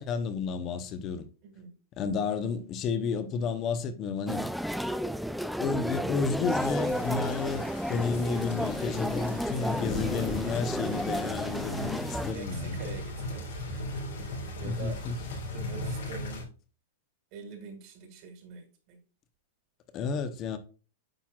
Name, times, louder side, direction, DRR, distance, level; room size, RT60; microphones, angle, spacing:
voice 1, 0.0-1.2 2.0-4.5 5.6-12.8 14.6-15.2 19.9-20.6, left 5 dB, 35° left, 1.0 m, -31 dB
voice 2, 1.4-1.7 9.2-9.5 12.2-14.0 14.3-15.0 15.5-16.5 17.3-19.0, right 5 dB, 50° right, 2.3 m, -45 dB
sound 1, 4.3-12.3, equal, ahead, 0.4 m, -32 dB
sound 2, 6.5-16.4, left 1 dB, 80° left, 3.4 m, -38 dB
9.0 x 5.8 x 2.4 m
hypercardioid pair, 110°, 0 cm